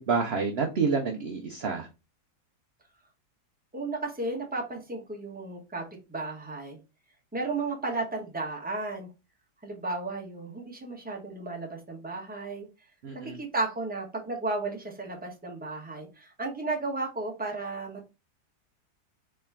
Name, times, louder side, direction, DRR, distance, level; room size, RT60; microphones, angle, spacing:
voice 1, 0.1-1.9 13.0-13.4, right 5 dB, 55° right, 3 dB, 0.7 m, -28 dB
voice 2, 3.7-5.8 6.1-6.8 7.3-9.1 9.6-12.7 13.2-18.1, right 3 dB, 5° right, -1 dB, 1.0 m, -34 dB
4.2 x 3.3 x 3.5 m, 0.28 s
omnidirectional pair, 1.7 m